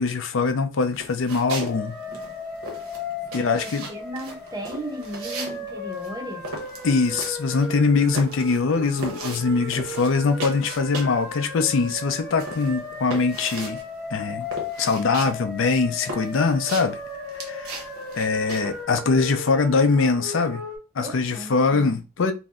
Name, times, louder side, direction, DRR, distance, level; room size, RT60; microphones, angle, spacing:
voice 1, 0.0-2.0 3.3-3.9 6.8-13.8 14.1-14.5 14.8-17.0 17.3-17.8 18.2-20.6 20.9-22.3, left 4 dB, 60° left, 0.4 m, -22 dB
sound 1, 0.9-1.8 2.0-11.3 11.5-18.8, right 2 dB, 80° right, 0.9 m, -37 dB
sound 2, 1.5-20.8, left 2 dB, 5° left, 1.0 m, -36 dB
voice 2, 3.4-6.5 21.0-22.0, right 1 dB, 20° right, 0.4 m, -36 dB
2.6 x 2.0 x 3.5 m
head